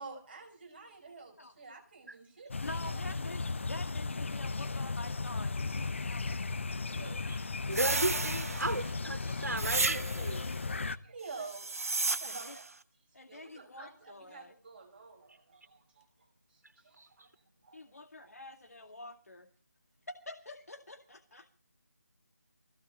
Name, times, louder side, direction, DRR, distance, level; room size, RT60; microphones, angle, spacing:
voice 1, 0.0-3.2 6.9-7.3 8.1-8.2 9.5-9.8 10.7-12.6 13.3-17.9 18.2-18.3 18.8-18.9, right 4 dB, 35° right, 3 dB, 5.3 m, -49 dB
sound 1, 2.5-11.0, left 3 dB, 45° left, 0.8 m, -36 dB
voice 2, 2.6-6.6 7.2-7.4 12.2-12.6 13.1-14.5 17.7-19.5 20.1-21.5, left 2 dB, 60° left, 4 dB, 2.2 m, -47 dB
sound 2, 7.7-8.9 9.6-10.4 11.4-12.7, right 3 dB, 55° right, 1.3 m, -33 dB
voice 3, 7.7-10.4 17.0-17.1, right 2 dB, 75° right, 10 dB, 3.1 m, -35 dB
24.0 x 17.0 x 3.1 m, 0.38 s
figure-of-eight pair, 160°, 9 cm